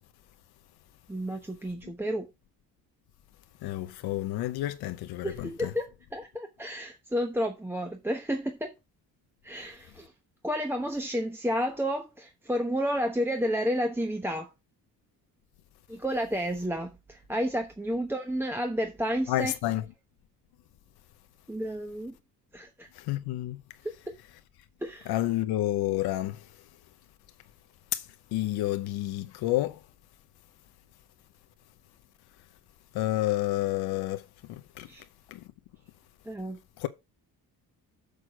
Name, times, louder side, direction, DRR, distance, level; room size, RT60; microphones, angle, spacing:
voice 1, 1.1-2.3 5.2-8.7 9.4-10.1 10.4-14.5 15.9-19.5 21.5-22.2 22.5-22.9 24.8-25.1 34.9-35.0 36.3-36.6, equal, 5° right, 0.9 m, -31 dB
voice 2, 3.6-5.7 19.3-19.8 23.0-23.6 25.1-26.4 27.9-28.0 28.3-29.8 32.9-34.9 35.3-35.4 36.8-36.9, left 15 dB, 90° left, 0.8 m, -30 dB
6.5 x 6.3 x 5.0 m
cardioid pair, 110°, 37 cm